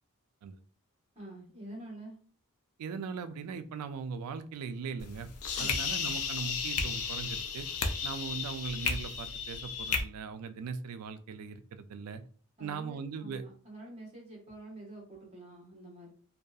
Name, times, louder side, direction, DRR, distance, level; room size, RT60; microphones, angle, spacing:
voice 1, 1.1-2.2 5.6-5.8 12.6-16.1, right 1 dB, 30° right, -3 dB, 1.1 m, -47 dB
voice 2, 2.8-5.3 5.6-7.7 8.0-12.2 12.6-13.4, right 5 dB, 90° right, 10 dB, 0.3 m, -39 dB
sound 1, 5.0-10.0, left 5 dB, 70° left, 0.4 m, -33 dB
2.6 x 2.3 x 2.3 m, 0.43 s
head